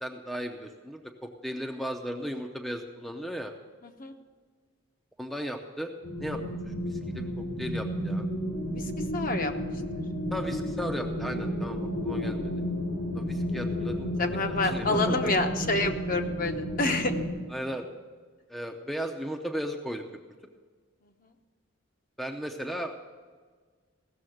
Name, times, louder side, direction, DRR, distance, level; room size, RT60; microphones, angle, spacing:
voice 1, 0.0-3.5 5.2-5.9 6.2-6.4 6.7-8.3 10.3-12.5 13.1-14.1 14.5-15.3 17.5-17.9 18.5-20.0 22.2-23.0, equal, ahead, 3 dB, 0.6 m, -36 dB
sound 1, 6.0-17.3, equal, 85° left, 3.2 m, -32 dB
voice 2, 8.7-9.5 14.2-17.1, left 2 dB, 40° left, 5 dB, 0.9 m, -28 dB
16.0 x 6.9 x 7.7 m, 1.5 s
head